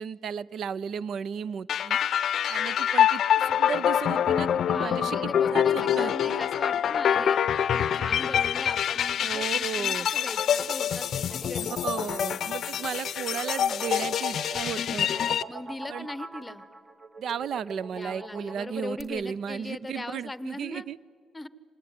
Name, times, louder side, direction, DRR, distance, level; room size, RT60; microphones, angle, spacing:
voice 1, 0.0-2.0 2.5-6.4 9.2-10.1 11.6-15.3 15.9-16.1 17.2-21.0, right 8 dB, 65° right, 20 dB, 0.6 m, -35 dB
sound 1, 1.7-15.4, left 9 dB, 65° left, 0.6 m, -26 dB
voice 2, 4.7-7.4 7.7-11.8 15.5-16.6 17.9-20.8 21.3-21.5, left 2 dB, 15° left, 15 dB, 1.0 m, -39 dB
sound 2, 10.5-19.0, right 2 dB, 35° right, 2.2 m, -42 dB
26.0 x 19.5 x 9.7 m, 2.2 s
cardioid pair, 90°, 0 cm